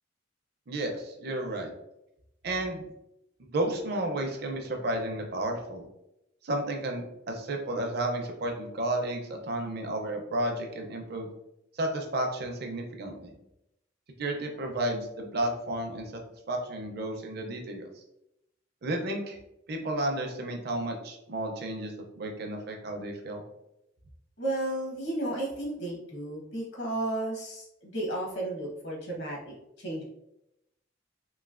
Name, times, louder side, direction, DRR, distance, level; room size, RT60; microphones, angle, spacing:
voice 1, 0.7-1.7 2.4-2.8 3.4-5.8 6.4-11.3 11.8-13.3 14.2-16.1 16.5-17.8 18.8-19.4 19.7-23.4, right 1 dB, 55° right, 2 dB, 0.5 m, -32 dB
voice 2, 24.4-30.0, right 1 dB, 65° left, -2 dB, 1.0 m, -33 dB
3.0 x 2.8 x 2.4 m, 0.84 s
head